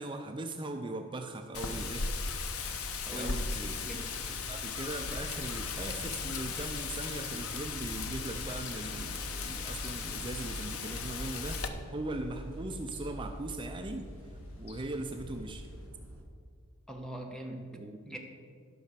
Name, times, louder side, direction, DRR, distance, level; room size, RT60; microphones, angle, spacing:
voice 1, 0.0-2.2 3.1-3.7 4.5-15.7 17.7-18.2, right 2 dB, 25° right, 5 dB, 0.5 m, -40 dB
Wind, 1.5-11.7, left 4 dB, 90° left, 0.9 m, -37 dB
sound 1, 2.9-15.9, left 1 dB, 70° left, 1.2 m, -57 dB
voice 2, 3.1-4.2 16.9-17.8 18.1-18.2, equal, 5° left, 2 dB, 1.2 m, -42 dB
sound 2, 7.5-16.2, equal, 80° right, 1.9 m, -45 dB
12.0 x 5.6 x 6.7 m, 2.1 s
head